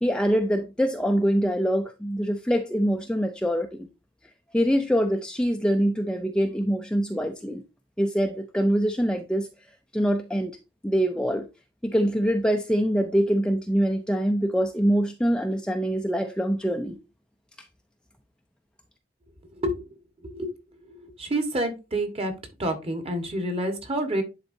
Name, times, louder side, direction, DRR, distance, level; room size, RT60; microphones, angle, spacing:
voice 1, 0.0-3.9 4.5-7.6 8.0-9.5 9.9-10.6 10.8-11.5 11.8-17.0, equal, 5° left, 0.5 m, -24 dB
voice 2, 20.9-22.3 22.6-24.2, right 1 dB, 35° right, 1.5 m, -28 dB
10.5 x 4.1 x 2.7 m
head